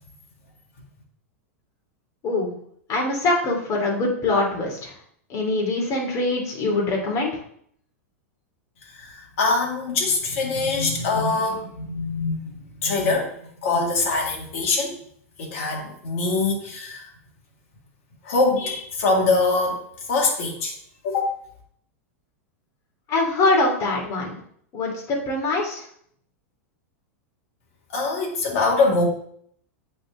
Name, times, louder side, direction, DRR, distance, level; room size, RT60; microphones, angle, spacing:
voice 1, 2.2-2.6 2.9-4.9 5.3-7.3 23.1-24.4 24.7-25.8, left 2 dB, 40° left, -1 dB, 2.9 m, -23 dB
voice 2, 8.8-13.3 13.6-15.0 15.4-17.1 18.2-20.7 21.0-21.3 27.9-29.1, left 3 dB, 65° left, 0 dB, 2.1 m, -23 dB
8.5 x 4.3 x 3.9 m, 0.64 s
hypercardioid pair, 110°, 8 cm